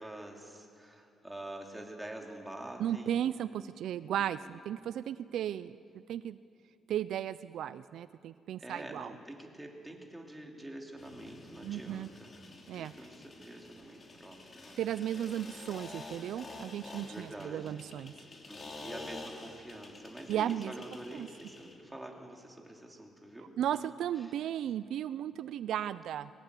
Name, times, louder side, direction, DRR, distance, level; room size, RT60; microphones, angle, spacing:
voice 1, 0.0-3.2 8.6-12.3 12.7-14.8 17.1-17.8 18.5-23.8 24.2-24.3, right 1 dB, 10° right, 1 dB, 2.9 m, -46 dB
voice 2, 2.8-5.8 6.1-6.4 6.9-9.1 11.6-12.1 12.7-12.9 14.8-18.1 20.3-20.7 21.1-21.3 23.6-26.3, right 10 dB, 75° right, 15 dB, 0.4 m, -35 dB
sound 1, 11.0-21.8, left 2 dB, 30° left, 3.2 m, -49 dB
22.0 x 18.5 x 8.3 m, 2.5 s
cardioid pair, 120°, 0 cm